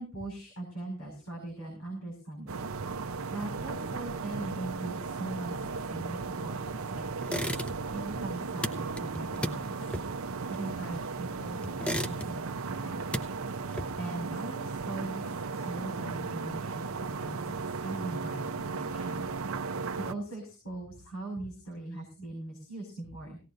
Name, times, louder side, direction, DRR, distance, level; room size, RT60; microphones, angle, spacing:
voice 1, 0.0-2.7 3.3-7.6 7.9-9.7 10.5-13.0 14.0-15.3 15.5-19.3 20.0-23.4, right 2 dB, 90° left, 2 dB, 5.7 m, -40 dB
sound 1, 2.5-20.1, right 4 dB, 90° right, 0.7 m, -36 dB
sound 2, 7.2-8.0 8.3-11.2 11.6-12.6 12.9-14.2, equal, 5° left, 0.7 m, -36 dB
18.5 x 16.0 x 2.6 m, 0.33 s
head